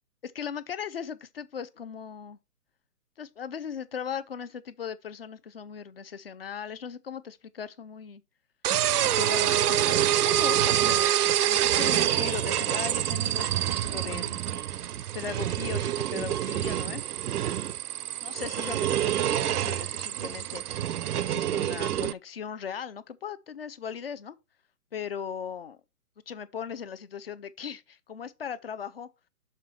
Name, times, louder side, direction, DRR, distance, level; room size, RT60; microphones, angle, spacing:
voice 1, 0.2-2.4 3.2-8.2 9.2-14.4 15.1-17.0 18.2-24.4 24.9-25.8 26.3-29.1, left 7 dB, 40° left, 0.6 m, -38 dB
sound 1, 8.6-22.1, right 11 dB, 75° right, 0.6 m, -26 dB
6.6 x 4.2 x 6.2 m
hypercardioid pair, 150°, 47 cm